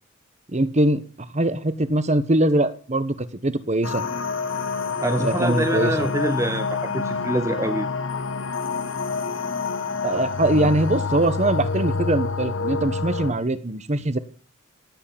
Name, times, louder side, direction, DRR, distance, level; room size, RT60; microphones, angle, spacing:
voice 1, 0.5-4.0 5.2-5.9 10.0-14.2, right 1 dB, 35° right, 14 dB, 1.2 m, -22 dB
sound 1, 3.8-13.3, left 4 dB, 60° left, 1.6 m, -27 dB
voice 2, 5.0-7.9, right 1 dB, 15° right, 11 dB, 0.7 m, -25 dB
17.5 x 8.6 x 8.8 m, 0.43 s
head